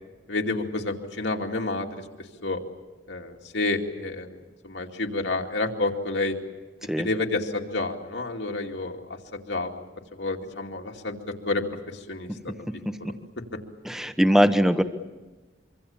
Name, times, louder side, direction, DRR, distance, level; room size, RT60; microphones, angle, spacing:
voice 1, 0.3-2.0 2.4-2.6 3.1-4.3 4.6-6.3 7.0-9.0 9.5-9.8 10.1-11.2 11.4-11.6 12.1-12.5, left 2 dB, 75° left, 1 dB, 2.6 m, -29 dB
voice 2, 13.8-14.8, equal, 5° right, 9 dB, 1.1 m, -21 dB
25.5 x 25.0 x 7.3 m, 1.2 s
head